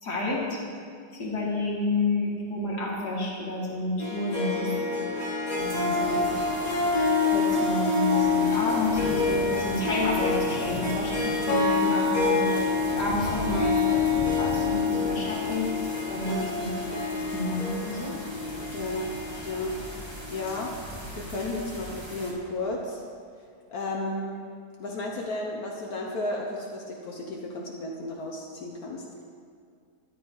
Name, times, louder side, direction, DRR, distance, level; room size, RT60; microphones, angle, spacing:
voice 1, 0.0-0.6 1.2-4.7 5.5-6.2 6.9-12.6 12.9-16.7 17.1-18.2, left 2 dB, 85° left, -4 dB, 2.9 m, -30 dB
Harp, 4.0-20.8, left 4 dB, 25° left, 1.5 m, -27 dB
sound 1, 5.6-22.3, equal, 15° right, 1.9 m, -40 dB
voice 2, 5.8-6.4 16.3-16.5 18.7-19.1 19.4-19.7 20.3-20.7 21.2-23.0 23.7-24.4 24.8-29.0, left 2 dB, 70° left, -1 dB, 1.6 m, -33 dB
13.0 x 9.9 x 4.8 m, 2.2 s
omnidirectional pair, 1.7 m